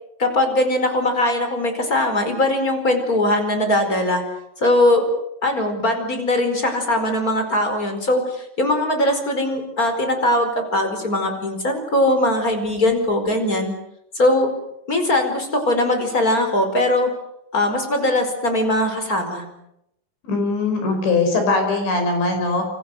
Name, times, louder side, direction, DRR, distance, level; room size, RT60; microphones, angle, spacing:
voice 1, 0.2-4.2 4.6-5.0 5.4-13.7 14.1-14.5 14.9-17.1 17.5-19.4, left 1 dB, 20° left, 6 dB, 4.6 m, -20 dB
voice 2, 20.3-22.6, left 3 dB, 60° left, 5 dB, 7.7 m, -20 dB
28.5 x 28.0 x 6.8 m, 0.80 s
omnidirectional pair, 5.9 m